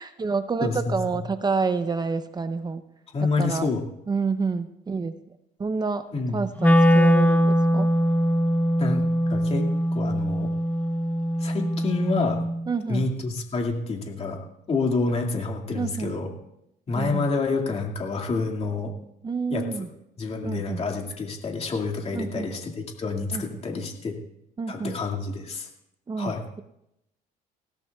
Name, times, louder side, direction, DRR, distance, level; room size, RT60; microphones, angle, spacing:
voice 1, 0.0-2.8 3.4-3.7 4.1-5.1 5.6-6.1 6.3-7.9 12.7-13.1 15.7-16.1 16.9-17.3 19.2-19.9 20.4-20.8 22.1-22.5 23.3-23.4 24.6-25.0 26.1-26.6, right 4 dB, 25° right, 10 dB, 0.6 m, -28 dB
voice 2, 0.6-1.0 3.1-3.8 6.1-6.4 8.8-9.7 9.9-10.5 11.4-12.4 12.9-14.4 14.7-16.3 16.9-18.9 19.5-19.9 20.2-24.2 24.7-25.7 26.2-26.4, left 3 dB, 35° left, 1 dB, 2.1 m, -28 dB
Wind instrument woodwind instrument, 6.6-12.7, equal, 10° left, 0.8 m, -22 dB
20.0 x 17.0 x 2.3 m, 0.83 s
cardioid pair, 110°, 17 cm